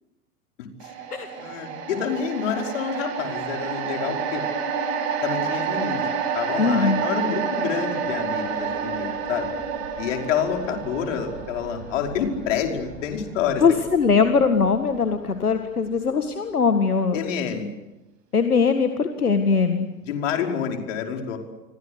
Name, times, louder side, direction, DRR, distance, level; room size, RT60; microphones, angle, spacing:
sound 1, 0.8-15.1 15.5-15.7, right 6 dB, 45° right, 6.7 m, -29 dB
voice 1, 1.4-4.4 5.2-6.1 6.3-9.5 10.0-13.6 17.1-17.7 20.1-21.4, left 8 dB, 55° left, 3 dB, 5.3 m, -28 dB
voice 2, 6.6-7.1 13.6-17.2 18.3-19.9, left 5 dB, 80° left, 7 dB, 2.0 m, -21 dB
29.5 x 24.5 x 8.2 m, 1.0 s
figure-of-eight pair, 95°, 44 cm